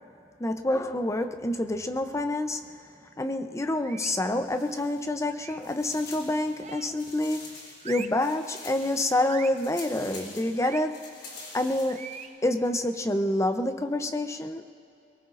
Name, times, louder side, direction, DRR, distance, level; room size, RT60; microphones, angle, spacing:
voice 1, 0.4-2.6 3.2-7.5 7.8-11.0 11.5-12.1 12.4-14.7, left 1 dB, 15° left, 7 dB, 0.6 m, -27 dB
sound 1, 3.8-4.3 5.3-5.7 6.6-7.1 7.8-8.3 9.3-9.7 10.6-10.9 11.9-12.4, right 7 dB, 40° right, 0.5 m, -42 dB
sound 2, 4.4-5.3 5.6-12.2, left 3 dB, 55° left, 3.8 m, -46 dB
23.0 x 23.0 x 2.6 m, 2.7 s
head